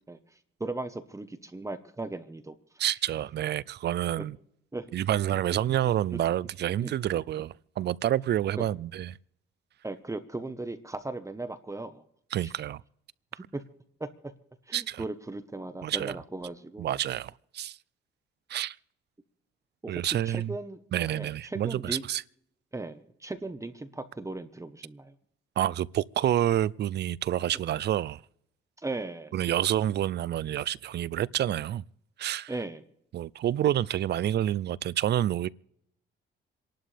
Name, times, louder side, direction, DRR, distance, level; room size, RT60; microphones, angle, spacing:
voice 1, 0.6-2.5 4.2-4.3 4.7-4.9 6.1-6.2 6.8-6.9 8.6-8.7 9.8-12.0 12.4-12.5 13.3-13.6 14.0-14.1 14.7-16.9 19.8-20.8 21.0-22.0 22.7-25.1 28.8-29.3 32.5-32.8, right 2 dB, 15° right, 1.1 m, -37 dB
voice 2, 2.8-4.4 4.9-9.2 12.3-12.8 14.7-15.0 15.8-16.2 16.8-17.8 18.5-18.8 19.9-20.5 20.9-22.2 25.6-28.2 29.3-31.8 32.2-32.5 33.1-35.5, right 12 dB, 60° right, 0.5 m, -28 dB
28.5 x 11.5 x 3.4 m
cardioid pair, 90°, 20 cm